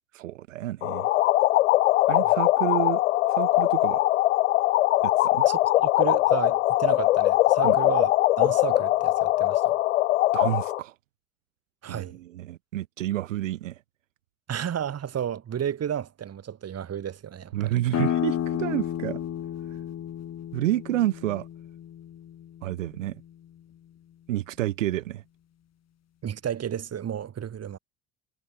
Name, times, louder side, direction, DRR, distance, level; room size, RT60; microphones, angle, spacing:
voice 1, 0.1-1.1 2.1-3.0 3.3-4.0 5.0-5.5 7.6-7.8 10.3-11.0 11.9-13.8 17.5-19.2 19.7-19.8 20.5-21.5 22.6-23.2 24.3-25.2, right 14 dB, 90° right, 2.1 m, -29 dB
sound 1, 0.8-10.8, left 16 dB, 85° left, 1.1 m, -21 dB
voice 2, 5.5-9.8 11.8-12.2 14.5-17.8 26.2-27.8, right 9 dB, 40° right, 8.0 m, -32 dB
sound 2, 17.9-23.3, left 10 dB, 45° left, 5.3 m, -32 dB
hypercardioid pair, 80°, 37 cm